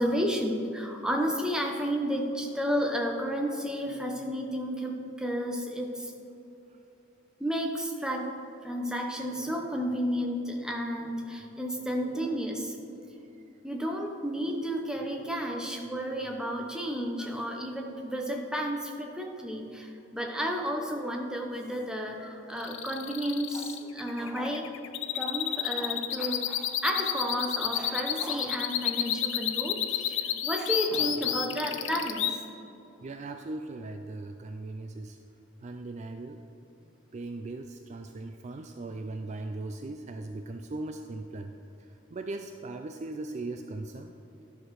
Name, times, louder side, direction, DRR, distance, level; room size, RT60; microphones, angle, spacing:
voice 1, 0.0-6.1 7.4-8.3 8.6-12.8 13.6-24.7 25.1-30.2 30.4-32.4, equal, 5° right, 1 dB, 0.8 m, -32 dB
sound 1, 22.6-32.3, left 11 dB, 65° left, 0.5 m, -30 dB
voice 2, 33.0-35.2 35.6-36.4 37.1-41.5 41.8-44.1, right 2 dB, 35° right, 6 dB, 0.3 m, -39 dB
11.5 x 6.1 x 4.7 m, 2.9 s
head